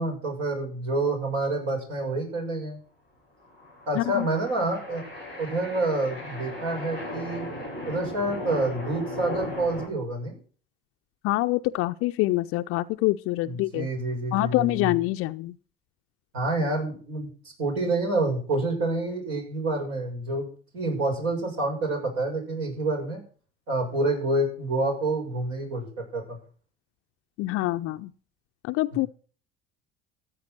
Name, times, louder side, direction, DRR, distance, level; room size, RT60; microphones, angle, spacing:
voice 1, 0.0-2.8 3.9-5.0 5.4-7.4 7.9-10.4 13.4-14.9 16.3-17.3 17.6-20.5 20.7-23.2 23.7-25.9 26.1-26.4, right 2 dB, 60° right, 1 dB, 6.6 m, -28 dB
sound 1, 3.4-9.9, left 1 dB, 90° right, 7.3 m, -37 dB
voice 2, 3.9-4.3 11.2-13.9 14.3-15.5 27.4-28.1 28.6-29.1, left 18 dB, 50° left, 9 dB, 0.6 m, -25 dB
14.5 x 8.5 x 6.0 m, 0.40 s
figure-of-eight pair, 65°, 29 cm